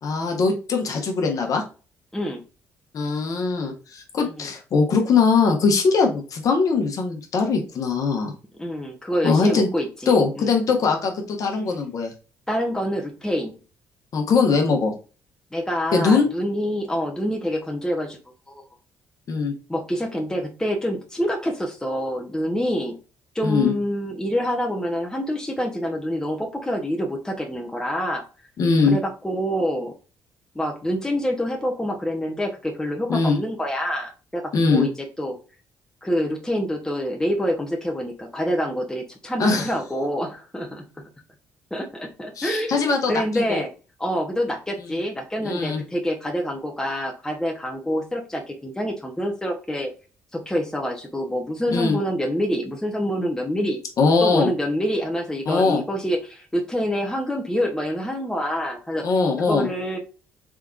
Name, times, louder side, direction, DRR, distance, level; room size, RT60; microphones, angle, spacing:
voice 1, 0.0-1.6 2.9-8.3 9.2-9.7 10.1-12.1 14.1-14.9 15.9-16.3 19.3-19.5 23.4-23.7 28.6-29.0 33.1-33.4 34.5-34.9 39.4-39.7 42.4-43.6 45.4-45.8 51.7-52.0 54.0-54.5 55.5-55.8 59.0-59.7, left 4 dB, 55° left, 2 dB, 1.1 m, -21 dB
voice 2, 8.6-10.5 12.5-13.6 15.5-18.2 18.5-18.6 19.7-23.0 23.3-28.2 28.8-29.9 30.5-34.4 34.7-34.9 35.2-35.4 36.0-40.8 41.7-43.7 44.0-49.9 50.3-53.8 54.2-59.0 59.5-60.0, equal, 10° left, 1 dB, 0.9 m, -26 dB
3.6 x 3.4 x 2.5 m, 0.34 s
hypercardioid pair, 50°, 7 cm